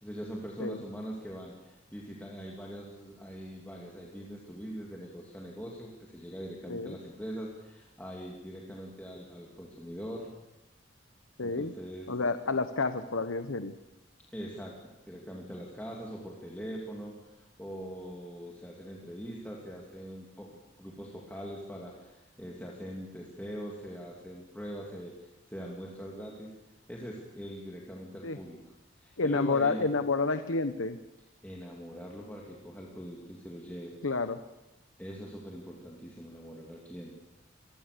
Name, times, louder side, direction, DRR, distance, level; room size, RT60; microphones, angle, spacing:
voice 1, 0.0-10.3 11.4-12.1 14.3-26.5 26.9-28.6 29.0-29.8 31.4-33.9 35.0-37.1, equal, 10° left, -3 dB, 2.8 m, -42 dB
voice 2, 11.4-11.7 12.1-13.7 28.2-28.4 29.2-31.0 34.0-34.4, left 3 dB, 80° left, 10 dB, 1.0 m, -29 dB
27.0 x 20.5 x 6.9 m, 0.96 s
head